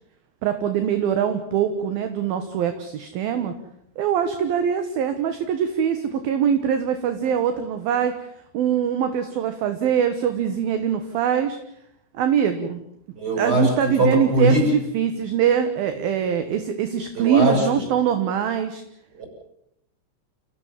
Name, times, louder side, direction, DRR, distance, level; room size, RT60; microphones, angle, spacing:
voice 1, 0.4-3.6 4.0-8.2 8.5-11.6 12.1-12.8 13.4-18.8, right 8 dB, 65° right, 9 dB, 2.7 m, -23 dB
voice 2, 13.2-13.7 14.0-14.7 17.3-17.8 19.1-19.2, right 1 dB, 20° right, 1 dB, 7.8 m, -20 dB
29.5 x 16.0 x 7.5 m, 0.74 s
omnidirectional pair, 5.2 m